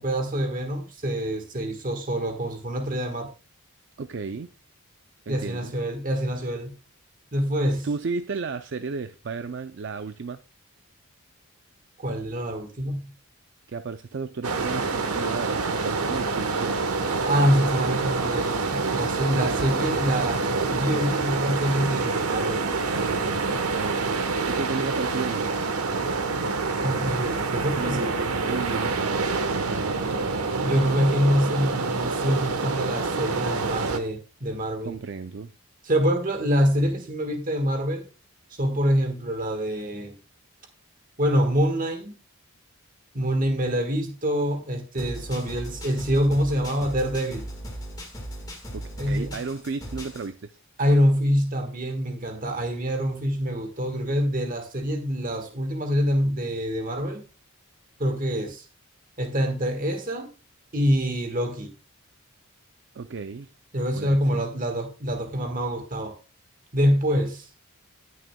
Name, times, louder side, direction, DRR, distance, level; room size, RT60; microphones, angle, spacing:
voice 1, 0.0-3.3 5.3-6.7 7.3-7.9 12.0-13.1 17.2-20.4 20.7-22.7 26.8-28.1 30.6-35.0 35.8-38.0 38.6-40.2 41.2-42.1 43.1-47.4 49.0-49.4 50.8-57.2 58.0-58.6 59.2-60.3 60.7-61.7 63.7-66.2 66.7-67.4, equal, 40° right, 1.4 m, -25 dB
voice 2, 4.0-4.5 5.3-5.7 7.8-10.4 13.7-16.8 23.7-25.5 27.8-28.2 28.4-30.0 34.8-35.5 48.7-50.6 62.9-63.5 63.9-64.4, right 4 dB, 55° right, 0.4 m, -33 dB
sound 1, 14.4-34.0, right 4 dB, 85° right, 1.1 m, -27 dB
sound 2, 45.0-50.3, equal, 15° left, 1.6 m, -38 dB
18.0 x 6.4 x 2.2 m
head